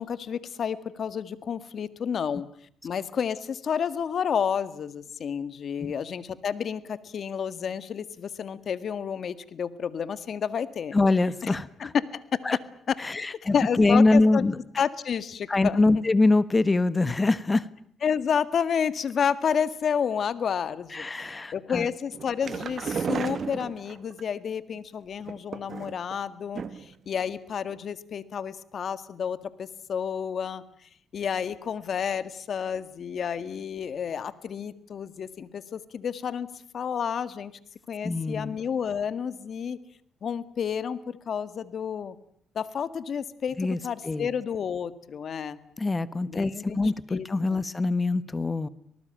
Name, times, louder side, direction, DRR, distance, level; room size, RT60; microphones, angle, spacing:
voice 1, 0.0-2.5 2.8-11.0 11.4-11.5 11.8-12.6 12.9-14.4 14.8-15.8 18.0-30.6 31.1-36.5 36.7-37.5 37.9-39.8 40.2-42.2 42.6-45.6 46.3-46.8 47.1-47.7, left 7 dB, 55° left, 14 dB, 1.8 m, -30 dB
voice 2, 10.9-11.9 12.4-12.6 13.0-14.6 15.5-17.7 20.9-21.9 38.0-38.6 43.6-43.8 44.0-44.3 45.8-48.7, left 2 dB, 25° left, 16 dB, 1.3 m, -24 dB
sound 1, 22.1-24.2 25.2-26.1 26.5-27.0 27.3-27.4 27.7-27.8, right 6 dB, 50° right, 1.8 m, -33 dB
26.0 x 19.5 x 9.0 m, 0.67 s
cardioid pair, 90°, 0 cm